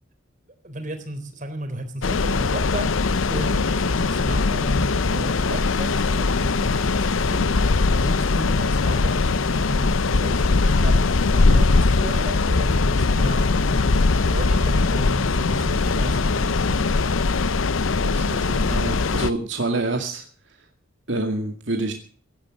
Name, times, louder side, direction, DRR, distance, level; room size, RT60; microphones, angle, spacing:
voice 1, 0.6-2.9 3.3-13.9 14.3-16.8, right 1 dB, 40° right, 7 dB, 3.8 m, -34 dB
sound 1, 2.0-19.3, left 3 dB, 90° left, 0.7 m, -21 dB
voice 2, 18.0-20.3 21.1-21.9, right 2 dB, 65° right, 3 dB, 2.3 m, -27 dB
17.0 x 11.5 x 6.4 m, 0.42 s
head